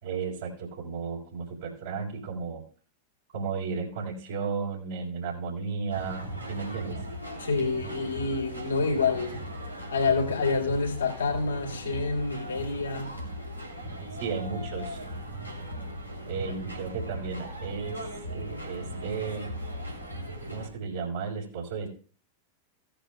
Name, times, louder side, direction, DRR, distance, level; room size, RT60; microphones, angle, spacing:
voice 1, 0.0-2.6 3.3-7.0 14.2-15.0 16.3-19.5 20.5-21.9, right 5 dB, 60° right, 4.0 m, -34 dB
sound 1, 5.9-20.7, equal, 90° right, 3.0 m, -38 dB
voice 2, 7.4-9.4 9.8-13.1, left 4 dB, 70° left, 4.0 m, -28 dB
17.5 x 10.0 x 2.3 m
figure-of-eight pair, 90°, 0 cm